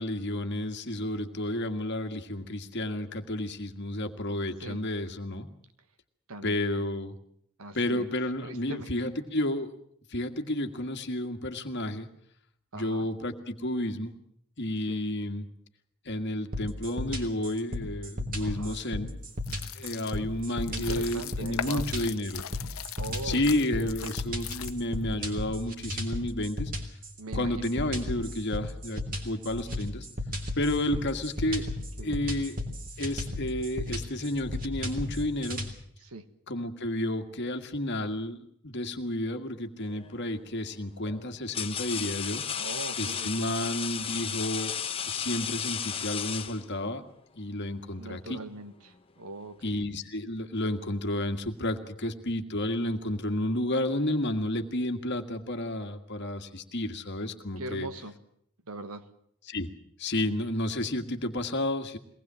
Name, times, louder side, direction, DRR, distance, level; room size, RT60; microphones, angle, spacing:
voice 1, 0.0-5.5 6.4-7.2 7.7-9.7 10.1-12.1 12.7-14.1 14.6-15.5 16.1-19.2 19.8-22.4 23.2-26.7 27.3-30.1 30.6-31.7 32.0-32.6 33.0-35.6 36.5-42.4 43.0-44.7 45.0-47.0 47.4-48.4 49.6-57.9 59.5-59.7 60.0-62.0, left 1 dB, 50° left, 7 dB, 1.9 m, -31 dB
voice 2, 6.3-6.8 7.6-8.1 8.4-9.0 12.7-13.1 14.9-15.0 18.4-18.8 20.7-21.9 23.0-24.1 27.2-27.7 32.0-32.2 36.0-36.2 42.6-43.5 47.9-49.7 57.6-58.1 58.7-59.1, right 2 dB, 80° right, 10 dB, 1.6 m, -41 dB
sound 1, 16.5-35.7, left 1 dB, 40° right, 3.5 m, -35 dB
sound 2, 19.4-25.0, left 9 dB, 70° left, 1.0 m, -40 dB
sound 3, 39.9-40.2 41.0-47.0, left 8 dB, 25° left, 1.0 m, -34 dB
23.0 x 19.0 x 7.6 m, 0.68 s
head